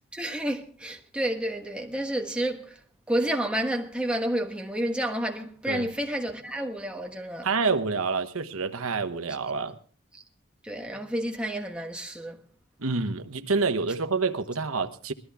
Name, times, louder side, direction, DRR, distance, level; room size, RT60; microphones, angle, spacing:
voice 1, 0.1-2.8 3.1-7.5 10.6-12.4, right 1 dB, 5° right, 1.3 m, -30 dB
voice 2, 7.4-9.8 12.8-15.1, right 4 dB, 85° right, 1.1 m, -27 dB
21.0 x 14.0 x 3.5 m
head